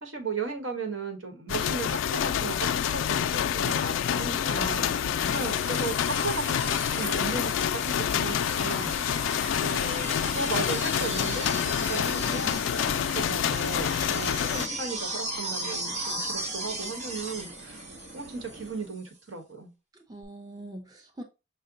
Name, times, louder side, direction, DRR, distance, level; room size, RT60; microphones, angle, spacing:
voice 1, 0.0-4.9 5.3-9.0 9.6-17.8 18.1-19.7, right 3 dB, 75° right, 1.2 m, -36 dB
sound 1, 1.5-14.7, left 9 dB, 70° left, 0.3 m, -27 dB
voice 2, 4.3-5.4 19.9-21.2, right 1 dB, 20° right, 0.6 m, -42 dB
sound 2, 4.8-18.8 20.2-20.3, right 1 dB, 35° right, 1.0 m, -37 dB
sound 3, 8.2-19.0, right 1 dB, 55° right, 0.7 m, -45 dB
5.7 x 2.2 x 3.8 m
head